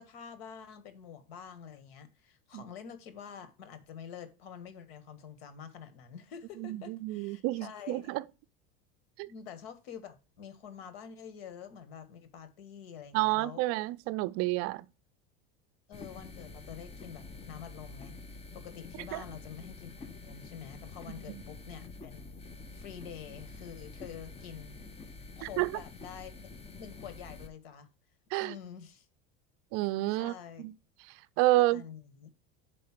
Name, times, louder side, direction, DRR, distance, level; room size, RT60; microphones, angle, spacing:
voice 1, 0.0-8.1 9.3-13.6 15.9-18.2 18.5-22.2 22.7-24.8 25.3-26.5 26.8-27.9 28.4-29.1 30.2-30.6 31.6-32.3, left 8 dB, 85° left, 1.4 m, -47 dB
voice 2, 6.6-8.2 9.2-9.3 13.1-14.9 19.1-19.2 25.4-25.7 28.3-28.5 29.7-30.3 30.6-30.7 31.4-31.8, right 18 dB, 50° right, 0.4 m, -29 dB
sound 1, 15.9-27.5, left 3 dB, 20° left, 0.9 m, -47 dB
5.3 x 4.7 x 5.8 m
supercardioid pair, 125°, 29 cm